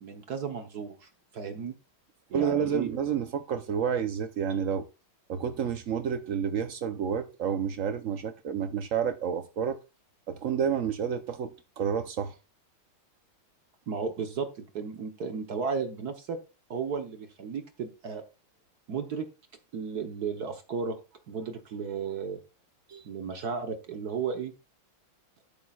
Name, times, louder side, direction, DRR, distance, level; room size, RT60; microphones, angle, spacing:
voice 1, 0.0-1.7 2.3-3.0 13.9-16.4 16.7-18.2 18.9-19.3 19.7-21.0 21.3-22.4 23.0-24.5, right 5 dB, 55° right, 1.3 m, -34 dB
voice 2, 2.3-4.9 5.3-9.8 10.3-12.3 22.9-23.0, right 7 dB, 80° right, 0.7 m, -30 dB
12.0 x 11.0 x 2.4 m
omnidirectional pair, 2.3 m